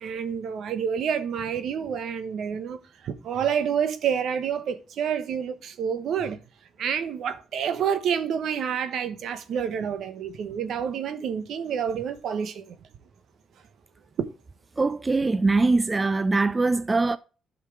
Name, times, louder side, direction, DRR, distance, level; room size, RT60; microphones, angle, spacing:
voice 1, 0.0-2.8 3.0-6.4 6.8-12.8 14.2-14.3, right 7 dB, 70° right, 1.1 m, -28 dB
voice 2, 14.8-17.2, right 3 dB, 25° right, 0.4 m, -22 dB
11.5 x 5.8 x 3.3 m
cardioid pair, 90°, 0 cm